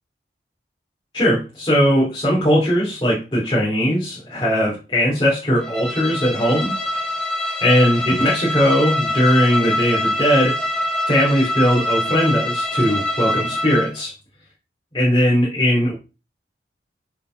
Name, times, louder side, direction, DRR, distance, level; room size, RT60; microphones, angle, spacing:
voice 1, 1.1-6.8 7.6-10.6 11.1-14.1 14.9-15.9, equal, 30° left, -6 dB, 2.8 m, -19 dB
Bowed string instrument, 5.6-14.0, left 1 dB, 5° left, 2.3 m, -24 dB
8.0 x 4.2 x 3.8 m, 0.30 s
head